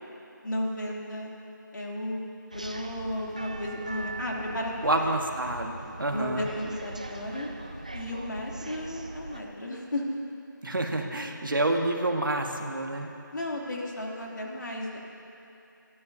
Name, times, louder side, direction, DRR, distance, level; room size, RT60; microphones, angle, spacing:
voice 1, 0.4-1.3 1.7-2.2 2.5-5.1 6.1-7.5 7.9-10.0 13.3-15.0, left 1 dB, 65° left, -2 dB, 2.8 m, -34 dB
sound 1, 2.5-9.4, right 2 dB, 20° right, 0.3 m, -41 dB
voice 2, 4.8-6.5 10.6-13.1, right 2 dB, 75° right, 3 dB, 1.7 m, -28 dB
27.0 x 13.0 x 2.8 m, 2.8 s
figure-of-eight pair, 170°, 11 cm